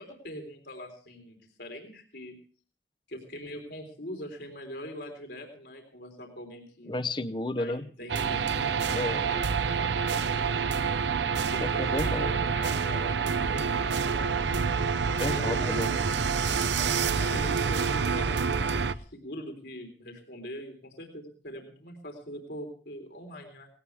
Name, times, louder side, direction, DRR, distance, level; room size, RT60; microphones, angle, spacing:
voice 1, 0.0-2.4 3.1-6.9 7.6-8.9 9.2-10.9 11.5-14.4 15.1-16.0 17.2-23.7, equal, 70° left, 4 dB, 3.7 m, -42 dB
voice 2, 6.9-7.9 8.8-9.3 11.6-12.3 15.2-15.9, left 2 dB, 25° left, 13 dB, 0.7 m, -32 dB
sound 1, 8.1-18.9, right 5 dB, 85° right, 0.7 m, -27 dB
19.0 x 17.5 x 3.5 m, 0.41 s
head